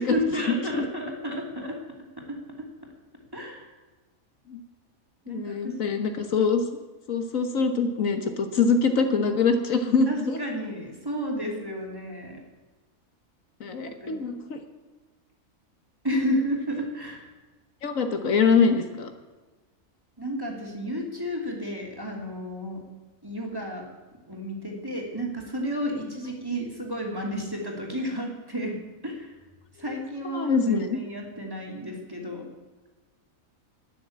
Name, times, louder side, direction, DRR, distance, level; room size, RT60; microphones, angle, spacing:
voice 1, 0.0-1.8 2.2-2.7 3.3-3.7 5.3-5.7 6.0-6.2 10.1-12.4 14.0-14.2 16.0-17.3 20.2-22.8 23.2-23.9 24.3-29.3 29.8-32.5, equal, 15° right, -1 dB, 2.8 m, -32 dB
voice 2, 5.3-6.6 7.1-10.4 13.6-14.6 17.8-19.1 30.3-31.0, left 5 dB, 70° left, 6 dB, 1.6 m, -24 dB
11.5 x 10.5 x 8.5 m, 1.2 s
omnidirectional pair, 1.4 m